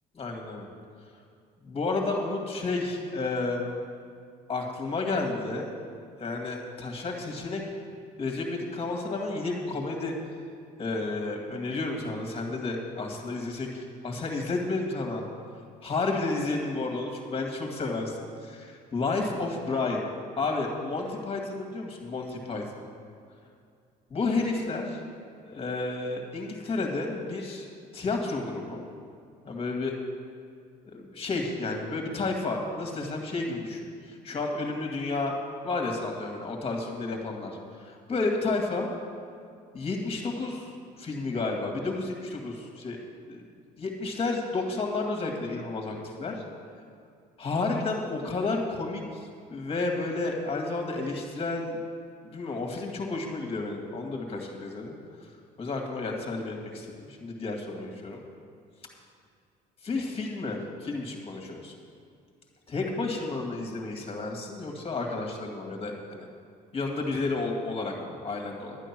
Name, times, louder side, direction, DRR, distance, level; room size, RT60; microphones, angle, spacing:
voice 1, 0.1-0.7 1.6-3.8 4.5-5.7 6.2-7.6 8.2-10.1 10.8-15.2 15.8-20.1 20.4-22.6 24.1-25.0 25.4-27.7 27.9-28.8 29.4-30.0 30.9-35.3 35.6-37.5 37.8-38.9 39.7-40.7 41.0-43.0 43.3-43.4 43.8-46.4 47.4-51.8 52.2-55.0 55.6-58.2 59.8-61.7 62.7-66.3 66.7-68.8, left 3 dB, 35° left, 2 dB, 2.2 m, -31 dB
11.5 x 9.1 x 6.1 m, 2.3 s
cardioid pair, 110°, 17 cm